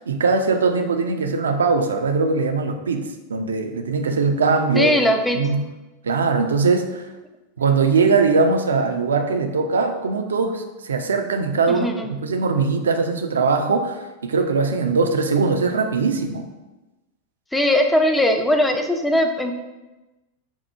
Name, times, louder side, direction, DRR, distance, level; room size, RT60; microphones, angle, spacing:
voice 1, 0.0-4.9 5.3-5.7 6.0-7.1 7.6-16.5, right 4 dB, 70° right, 5 dB, 0.4 m, -21 dB
voice 2, 4.7-5.4 11.7-12.1 17.5-19.5, left 1 dB, 5° left, 4 dB, 0.4 m, -19 dB
4.4 x 2.1 x 4.5 m, 1.1 s
figure-of-eight pair, 90°, 0 cm